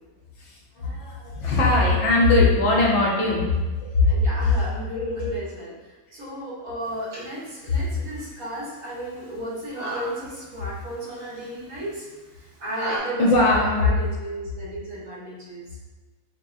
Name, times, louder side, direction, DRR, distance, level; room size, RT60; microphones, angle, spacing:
voice 1, 0.8-3.5 3.8-4.3 7.7-7.8 13.2-14.0, left 2 dB, 60° left, -3 dB, 1.0 m, -20 dB
voice 2, 4.0-5.7 6.1-12.1 12.6-15.7, right 1 dB, 75° right, -7 dB, 1.8 m, -34 dB
sound 1, 6.8-13.0, right 1 dB, 45° right, 1.4 m, -38 dB
4.6 x 2.9 x 2.6 m, 1.2 s
omnidirectional pair, 1.5 m